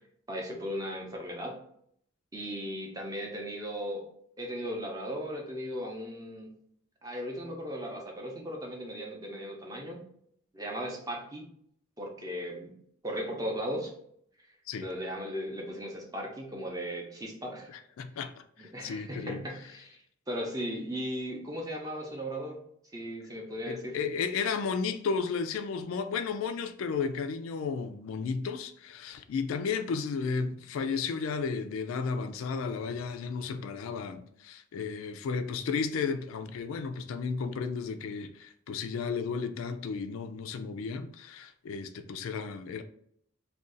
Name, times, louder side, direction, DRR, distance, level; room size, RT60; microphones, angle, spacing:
voice 1, 0.3-1.6 2.3-4.1 4.4-6.5 7.0-10.0 10.5-11.4 12.0-12.7 13.0-13.9 14.8-17.7 18.6-20.0 20.3-22.6 22.9-24.0, equal, 15° right, 0.6 m, -37 dB
voice 2, 17.7-19.4 23.7-42.8, left 5 dB, 75° left, 0.3 m, -33 dB
2.5 x 2.3 x 3.7 m
head